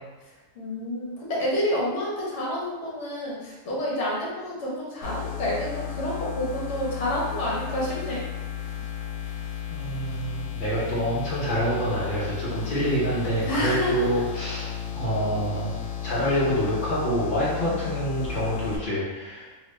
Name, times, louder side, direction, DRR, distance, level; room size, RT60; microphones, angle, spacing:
voice 1, 0.5-8.2 13.4-14.2 17.6-17.8, left 1 dB, 65° left, -5 dB, 1.2 m, -29 dB
sound 1, 5.0-18.8, left 9 dB, 85° left, 1.0 m, -34 dB
voice 2, 9.7-19.5, equal, 45° left, -7 dB, 0.8 m, -27 dB
2.7 x 2.4 x 3.1 m, 1.2 s
omnidirectional pair, 1.4 m